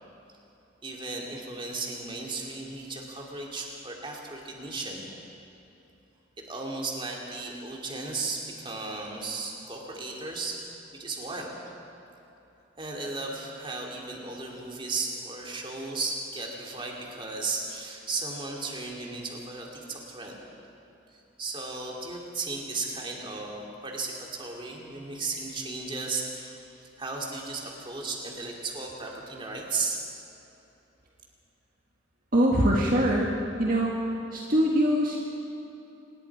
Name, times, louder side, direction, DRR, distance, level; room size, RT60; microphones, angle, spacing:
voice 1, 0.8-5.0 6.4-10.6 10.9-11.5 12.8-20.4 21.1-30.0, right 3 dB, 25° right, -1 dB, 2.9 m, -35 dB
voice 2, 32.3-33.3 33.6-34.0 34.3-35.2, equal, 45° right, -3 dB, 1.8 m, -23 dB
26.5 x 20.5 x 4.9 m, 3.0 s
head